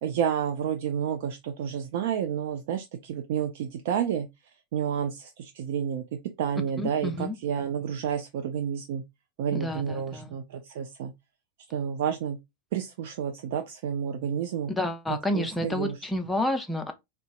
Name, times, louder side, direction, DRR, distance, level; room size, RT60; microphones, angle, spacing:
voice 1, 0.0-6.0 6.4-9.0 9.4-11.1 11.7-12.4 12.7-14.7 15.3-16.0, right 8 dB, 50° right, 0.3 m, -30 dB
voice 2, 6.8-7.4 9.5-10.3 14.7-16.9, left 1 dB, 5° left, 0.5 m, -30 dB
3.8 x 2.2 x 2.4 m
figure-of-eight pair, 90°, 0 cm